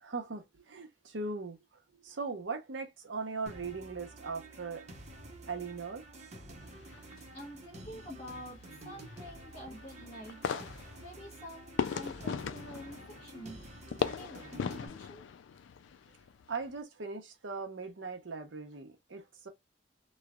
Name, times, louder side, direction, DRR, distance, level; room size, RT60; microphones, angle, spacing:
voice 1, 0.0-1.6 2.0-4.9 5.5-6.0 16.5-19.5, right 4 dB, 85° right, 0.8 m, -39 dB
sound 1, 3.5-14.9, right 2 dB, 40° right, 0.8 m, -50 dB
sound 2, 6.7-16.8, left 6 dB, 80° left, 0.3 m, -40 dB
voice 2, 7.3-13.7 14.0-15.3, equal, 35° left, 1.0 m, -48 dB
3.1 x 2.2 x 2.3 m
head